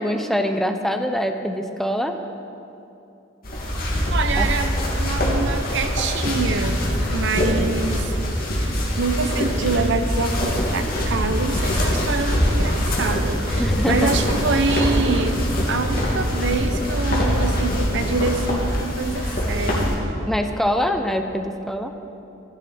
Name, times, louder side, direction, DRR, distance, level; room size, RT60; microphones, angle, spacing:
voice 1, 0.0-2.2 4.4-4.5 13.6-14.1 20.3-21.9, equal, ahead, 5 dB, 0.5 m, -24 dB
sound 1, 3.4-20.0, equal, 50° left, 2.3 m, -23 dB
voice 2, 4.1-6.8 7.1-8.3 9.0-15.4 15.7-20.0, right 4 dB, 65° right, 8 dB, 0.7 m, -25 dB
13.0 x 11.5 x 4.3 m, 2.8 s
head